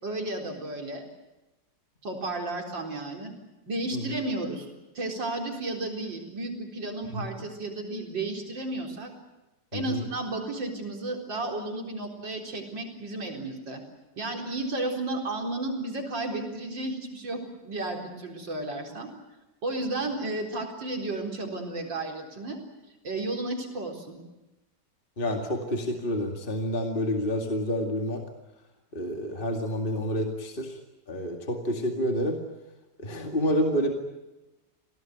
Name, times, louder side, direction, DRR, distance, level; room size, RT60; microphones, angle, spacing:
voice 1, 0.0-1.1 2.0-3.3 3.7-4.7 4.9-9.1 9.7-13.8 14.2-19.1 19.6-22.6 23.0-24.2, right 2 dB, 85° right, 2 dB, 4.8 m, -33 dB
voice 2, 9.7-10.0 25.2-28.2 28.9-30.7 31.1-32.4 33.0-33.9, equal, 30° left, 3 dB, 2.4 m, -28 dB
28.0 x 18.0 x 9.2 m, 1.0 s
omnidirectional pair, 1.9 m